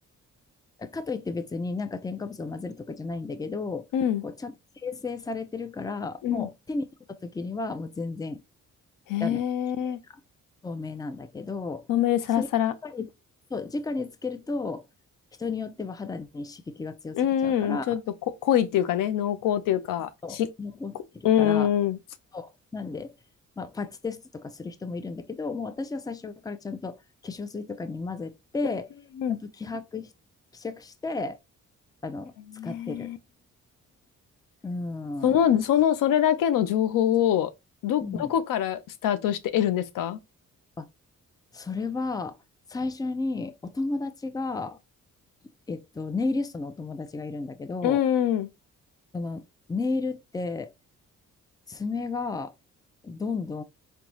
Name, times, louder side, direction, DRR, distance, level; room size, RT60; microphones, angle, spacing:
voice 1, 0.8-3.9 4.2-8.4 9.2-9.5 9.8-9.9 10.6-11.9 12.4-12.5 12.8-13.1 13.5-14.8 15.4-17.9 20.2-21.7 22.3-23.1 23.6-28.9 29.3-30.1 30.5-31.4 32.0-32.3 32.6-33.1 34.6-35.4 38.0-38.3 40.8-40.9 41.5-42.4 42.7-44.8 45.7-48.0 49.1-49.4 49.7-50.7 51.7-52.5 53.0-53.6, left 3 dB, 10° left, 0.5 m, -33 dB
voice 2, 3.9-4.2 6.2-6.5 9.1-10.0 11.9-12.7 17.1-18.0 18.4-20.5 21.2-22.0 29.2-29.4 32.6-33.2 35.2-37.5 37.8-40.2 47.8-48.5, left 10 dB, 80° left, 0.6 m, -24 dB
3.9 x 2.3 x 3.0 m
cardioid pair, 65°, 32 cm